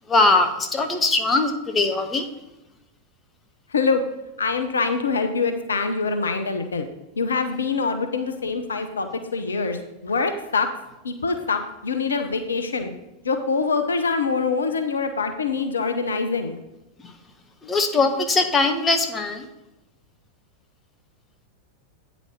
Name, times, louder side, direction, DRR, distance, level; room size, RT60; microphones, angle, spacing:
voice 1, 0.1-2.2 17.6-19.5, left 3 dB, 15° left, 5 dB, 0.9 m, -21 dB
voice 2, 3.7-4.0 4.4-6.9 7.2-10.7 11.0-12.9 13.2-16.6, left 4 dB, 70° left, 8 dB, 0.7 m, -24 dB
8.8 x 4.1 x 5.8 m, 0.94 s
figure-of-eight pair, 90°, 0 cm